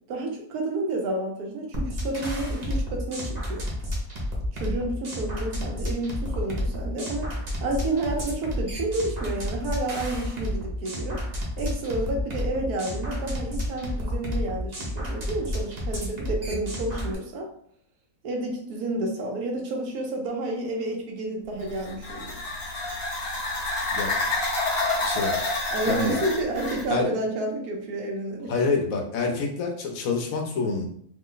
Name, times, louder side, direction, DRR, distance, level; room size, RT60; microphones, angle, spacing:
voice 1, 0.1-3.7 4.5-7.3 7.6-11.2 11.6-17.5 18.2-22.4 25.7-28.5, right 2 dB, 80° right, 1 dB, 1.2 m, -30 dB
sound 1, 1.7-17.1, equal, 40° right, 0.6 m, -31 dB
sound 2, 21.6-26.9, left 2 dB, 50° left, 0.4 m, -28 dB
voice 2, 25.0-25.4 25.9-26.2 26.9-27.1 28.5-30.9, left 4 dB, 70° left, 1 dB, 1.0 m, -27 dB
3.1 x 2.0 x 3.7 m, 0.65 s
omnidirectional pair, 1.6 m